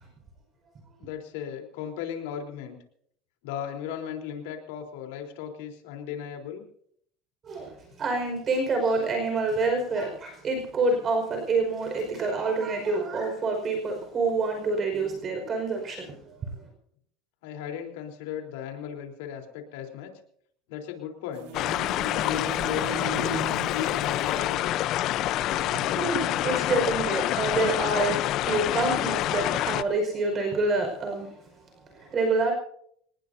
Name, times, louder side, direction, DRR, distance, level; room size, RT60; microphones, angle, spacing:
voice 1, 1.0-2.8 3.4-6.6 17.4-20.1 20.7-21.5 22.2-23.4 23.7-24.8, left 9 dB, 85° left, 3 dB, 3.8 m, -36 dB
voice 2, 7.4-16.6 25.7-31.3 31.9-32.5, right 3 dB, 30° right, 4 dB, 5.3 m, -27 dB
sound 1, 21.3-26.9, right 8 dB, 75° right, 3.1 m, -40 dB
sound 2, 21.5-29.8, left 13 dB, 50° left, 0.7 m, -27 dB
26.0 x 19.5 x 2.8 m, 0.65 s
supercardioid pair, 135°, 0 cm